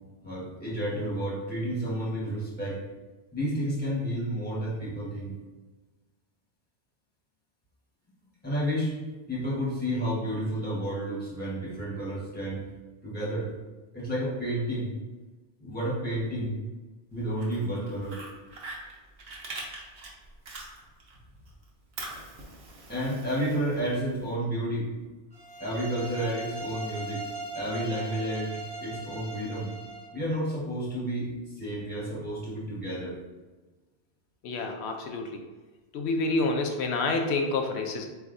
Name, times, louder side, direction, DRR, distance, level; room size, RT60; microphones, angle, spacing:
voice 1, 0.2-2.8 3.3-5.4 8.4-8.9 9.3-12.6 13.0-13.5 13.9-14.9 15.6-16.6 17.1-18.2 22.9-24.9 25.6-27.2 27.5-29.7 30.1-31.3 31.6-33.1, right 1 dB, 10° left, -5 dB, 1.2 m, -31 dB
Fire, 17.2-21.2 21.5-24.3, right 2 dB, 85° right, 1.2 m, -43 dB
sound 1, 25.3-30.1, right 2 dB, 25° right, 1.0 m, -39 dB
voice 2, 34.4-35.4 35.9-38.1, left 3 dB, 85° left, 3 dB, 0.9 m, -28 dB
7.8 x 2.6 x 2.6 m, 1.2 s
omnidirectional pair, 1.1 m